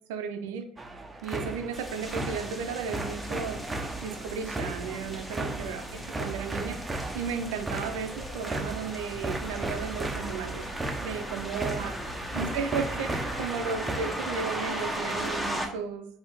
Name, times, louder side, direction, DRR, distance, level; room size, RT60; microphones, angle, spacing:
voice 1, 0.1-0.6 1.2-3.6 4.0-6.9 7.1-10.6 11.0-11.9 12.3-16.1, right 6 dB, 70° right, 7 dB, 0.5 m, -34 dB
sound 1, 0.8-14.0, right 2 dB, 20° right, 0.6 m, -36 dB
sound 2, 1.7-15.7, equal, ahead, 0.9 m, -37 dB
4.2 x 2.8 x 3.9 m, 0.67 s
figure-of-eight pair, 55°, 0 cm